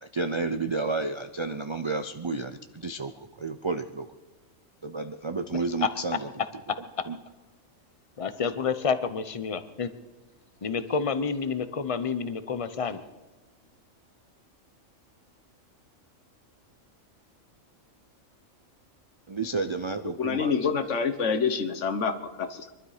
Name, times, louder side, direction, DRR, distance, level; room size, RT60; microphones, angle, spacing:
voice 1, 0.0-4.1 4.8-6.3 7.1-7.2 19.3-20.5, right 3 dB, 45° right, 9 dB, 0.3 m, -31 dB
voice 2, 8.2-9.9 10.6-13.0, left 5 dB, 30° left, 12 dB, 0.8 m, -29 dB
voice 3, 20.2-22.7, left 6 dB, 65° left, 10 dB, 1.3 m, -27 dB
23.5 x 12.5 x 5.0 m, 1.2 s
omnidirectional pair, 1.4 m